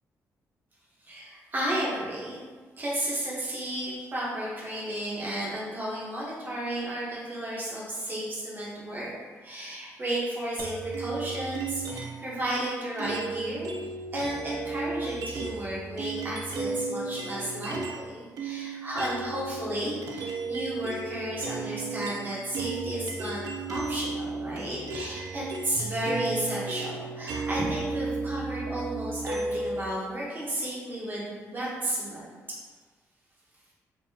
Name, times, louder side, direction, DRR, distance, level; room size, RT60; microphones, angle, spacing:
voice 1, 1.0-2.4 2.8-9.1 9.4-13.7 14.1-23.4 23.7-32.6, right 1 dB, 30° right, -6 dB, 1.1 m, -33 dB
sound 1, 10.6-12.3 13.0-18.1 18.4-29.8, right 3 dB, 85° right, 0.4 m, -34 dB
3.7 x 2.8 x 2.8 m, 1.4 s
cardioid pair, 130°, 6 cm